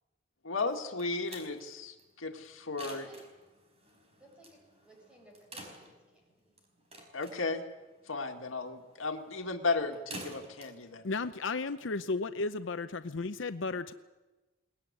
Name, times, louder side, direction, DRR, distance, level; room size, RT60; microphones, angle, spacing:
voice 1, 0.4-3.1 7.1-7.6 8.1-11.0, left 3 dB, 80° left, 4 dB, 2.0 m, -35 dB
sound 1, 0.7-12.1, right 1 dB, 30° right, 4.8 m, -51 dB
voice 2, 2.8-3.2 4.2-4.6 4.8-6.6, equal, 5° right, -1 dB, 7.9 m, -58 dB
voice 3, 11.0-13.9, left 3 dB, 65° left, 11 dB, 0.7 m, -34 dB
21.5 x 19.5 x 9.7 m, 1.2 s
head